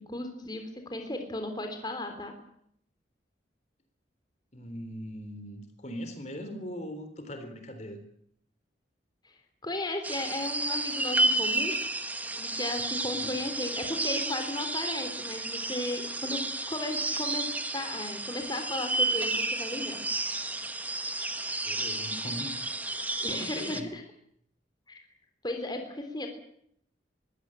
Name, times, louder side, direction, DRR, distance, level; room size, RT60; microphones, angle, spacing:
voice 1, 0.1-2.3 9.6-11.8 12.4-16.4 16.7-17.5 17.7-20.0 23.2-24.0 24.9-25.0 25.4-26.3, left 1 dB, 25° left, 5 dB, 3.5 m, -35 dB
voice 2, 4.5-8.0 13.1-13.4 21.7-22.7 23.2-23.9, equal, 40° left, 8 dB, 3.7 m, -40 dB
sound 1, 10.0-23.8, right 2 dB, 10° right, 1.4 m, -31 dB
23.0 x 16.5 x 9.0 m, 0.70 s
head